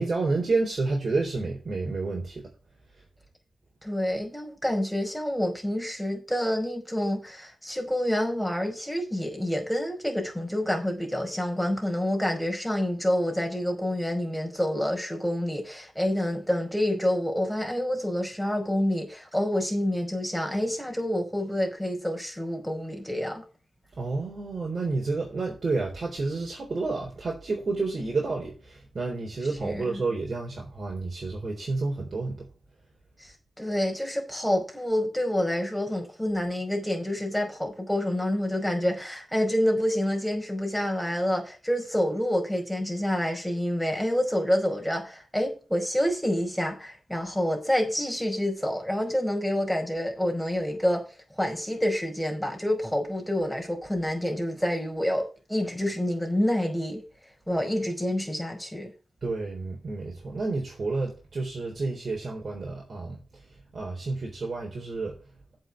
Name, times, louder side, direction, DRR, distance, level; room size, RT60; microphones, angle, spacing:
voice 1, 0.0-2.5 24.0-32.5 59.2-63.4 63.7-65.2, right 3 dB, 60° right, 3.8 m, -30 dB
voice 2, 3.8-23.4 29.6-30.0 33.6-51.0 51.4-57.0 57.5-58.9, left 1 dB, 5° left, 5.2 m, -28 dB
7.9 x 6.7 x 7.4 m
cardioid pair, 45°, 0 cm